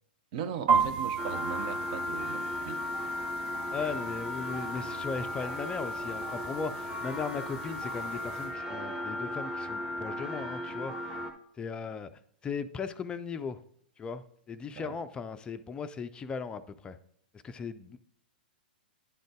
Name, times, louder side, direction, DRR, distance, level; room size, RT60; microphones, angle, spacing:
voice 1, 0.3-2.8 14.8-14.9, right 8 dB, 50° right, 0.6 m, -38 dB
sound 1, 0.7-8.5, right 6 dB, 70° right, 1.8 m, -35 dB
sound 2, 1.2-11.3, left 1 dB, 10° right, 0.9 m, -36 dB
voice 2, 3.7-11.2 11.5-12.1 12.4-13.6 14.0-17.0 17.3-18.0, left 5 dB, 20° left, 0.4 m, -37 dB
10.5 x 3.8 x 3.5 m
hypercardioid pair, 110°, 5 cm